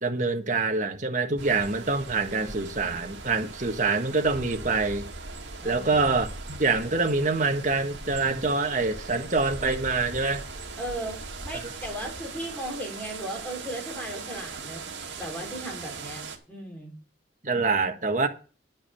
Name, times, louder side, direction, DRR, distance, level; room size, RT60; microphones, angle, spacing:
voice 1, 0.0-5.1 5.6-10.4 11.6-11.7 17.4-18.3, right 3 dB, 40° right, 1.5 m, -25 dB
sound 1, 1.4-16.4, right 3 dB, 70° right, 2.3 m, -40 dB
voice 2, 5.6-6.1 10.8-14.8 15.2-16.2 16.5-16.9, right 1 dB, 10° left, 3.9 m, -36 dB
10.5 x 6.3 x 6.9 m
head